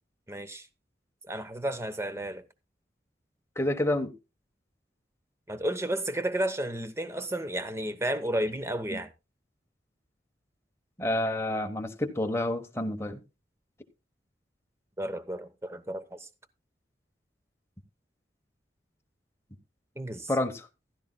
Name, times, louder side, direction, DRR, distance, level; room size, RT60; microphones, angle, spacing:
voice 1, 0.3-0.7 1.3-2.4 5.5-9.1 15.0-16.3 20.0-20.3, right 1 dB, 15° right, 0.8 m, -32 dB
voice 2, 3.6-4.1 8.9-9.0 11.0-13.2 20.3-20.7, left 1 dB, 15° left, 1.0 m, -29 dB
15.0 x 12.0 x 2.2 m
head